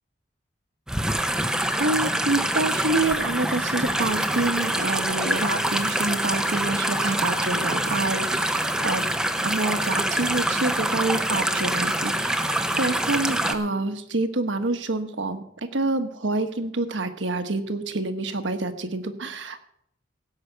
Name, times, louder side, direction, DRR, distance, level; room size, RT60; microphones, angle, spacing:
sound 1, 0.9-13.5, right 1 dB, 5° right, 0.8 m, -25 dB
voice 1, 1.8-9.1 9.4-15.4 15.7-19.6, right 2 dB, 80° right, 7 dB, 1.3 m, -27 dB
17.0 x 5.8 x 8.0 m, 0.72 s
head